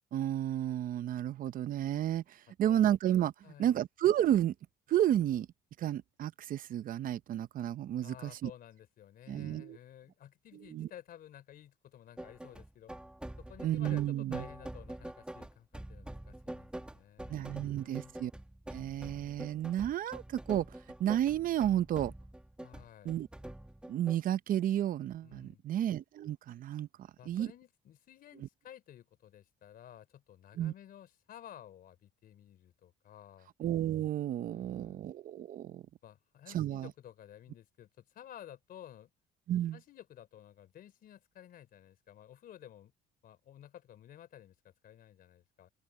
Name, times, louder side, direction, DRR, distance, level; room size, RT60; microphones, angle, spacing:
voice 1, 0.1-3.3 3.6-4.5 4.9-5.5 5.8-8.5 9.3-9.8 10.7-10.9 13.6-14.5 17.3-18.3 18.7-20.7 21.0-22.1 23.0-23.3 23.9-26.9 27.3-27.5 30.6-30.7 33.6-35.8 36.5-36.9 39.5-39.8, right 11 dB, 55° right, 0.7 m, -31 dB
voice 2, 3.4-3.8 8.0-12.9 13.4-18.1 22.6-23.2 25.2-25.6 27.2-33.5 34.5-35.0 36.0-39.1 39.7-42.9 43.2-45.7, left 11 dB, 60° left, 3.6 m, -54 dB
sound 1, 12.2-24.2, right 1 dB, 5° right, 1.8 m, -46 dB
open air
cardioid pair, 110°, 17 cm